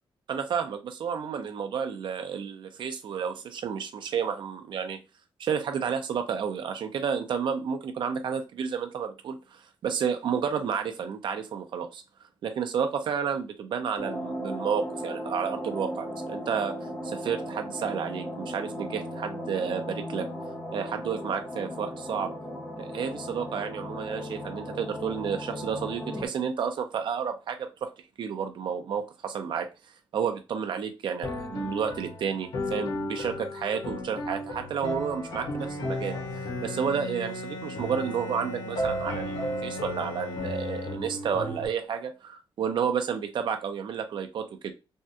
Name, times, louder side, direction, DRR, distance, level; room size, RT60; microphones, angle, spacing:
voice 1, 0.3-5.0 5.4-12.0 12.4-16.8 17.0-20.3 20.7-22.3 22.8-27.9 28.2-29.7 30.1-44.7, right 7 dB, 55° right, 0.5 m, -31 dB
sound 1, 14.0-26.3, equal, 15° left, 0.6 m, -36 dB
sound 2, 31.2-41.7, left 1 dB, 90° left, 1.2 m, -35 dB
Bowed string instrument, 35.6-41.4, left 1 dB, 45° left, 1.0 m, -39 dB
3.5 x 2.2 x 2.7 m
wide cardioid pair, 175°, 9 cm